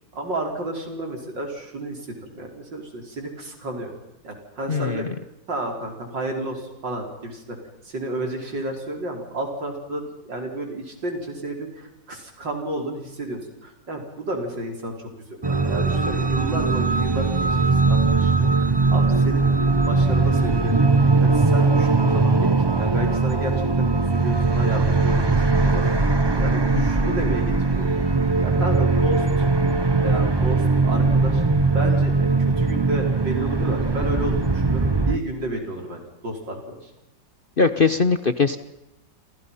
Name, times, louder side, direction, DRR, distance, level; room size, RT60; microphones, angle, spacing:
voice 1, 0.1-3.9 4.2-5.1 5.5-7.6 7.8-22.5 22.8-26.1 26.4-28.0 28.4-29.5 30.0-31.4 31.7-36.9, right 1 dB, 80° right, 2 dB, 5.7 m, -32 dB
voice 2, 4.7-5.1 37.6-38.6, left 4 dB, 40° left, 10 dB, 0.9 m, -20 dB
sound 1, 15.4-35.2, right 3 dB, 20° right, 0.8 m, -20 dB
sound 2, 15.5-35.0, left 1 dB, 55° left, 5.7 m, -39 dB
29.5 x 28.0 x 5.7 m, 0.90 s
omnidirectional pair, 1.9 m